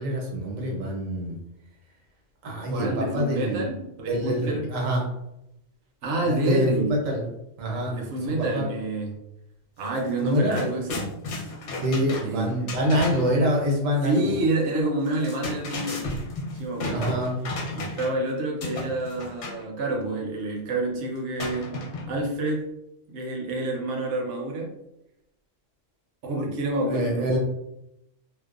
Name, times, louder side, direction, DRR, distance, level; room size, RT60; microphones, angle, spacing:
voice 1, 0.0-1.4 2.4-3.7 4.1-5.0 6.2-7.3 7.6-7.9 8.4-8.6 10.2-10.7 11.8-14.3 16.9-17.3 26.9-27.4, equal, 85° right, 0 dB, 1.1 m, -25 dB
voice 2, 2.7-4.7 6.0-7.0 7.9-9.3 9.8-11.1 12.2-12.7 14.0-16.2 16.5-17.2 17.7-22.7 23.1-24.8 26.2-27.4, right 2 dB, 65° right, 0 dB, 0.8 m, -28 dB
sound 1, 9.9-10.0 10.3-13.4 15.1-18.3 18.6-19.6 21.4-22.3, left 2 dB, 70° left, 0.9 m, -33 dB
2.5 x 2.1 x 2.4 m, 0.84 s
omnidirectional pair, 1.3 m